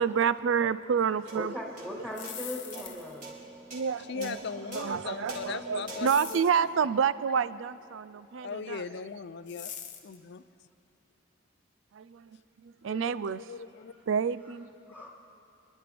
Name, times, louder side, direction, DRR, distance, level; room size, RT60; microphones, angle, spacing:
voice 1, 0.0-1.5 3.7-4.4 4.7-8.8 11.9-12.3 12.8-13.4 14.1-14.7, right 7 dB, 75° right, 16 dB, 0.4 m, -28 dB
voice 2, 1.3-3.3 14.9-15.1, left 1 dB, 10° right, -4 dB, 2.9 m, -38 dB
sound 1, 1.3-7.9, right 1 dB, 45° right, 3.8 m, -46 dB
sound 2, 2.0-3.3 6.1-6.6 9.5-10.2, left 9 dB, 40° left, 1.0 m, -42 dB
voice 3, 4.1-6.7 8.4-9.7 10.0-10.4 12.8-13.9, left 5 dB, 60° left, 13 dB, 0.5 m, -39 dB
28.5 x 11.5 x 3.4 m, 2.9 s
head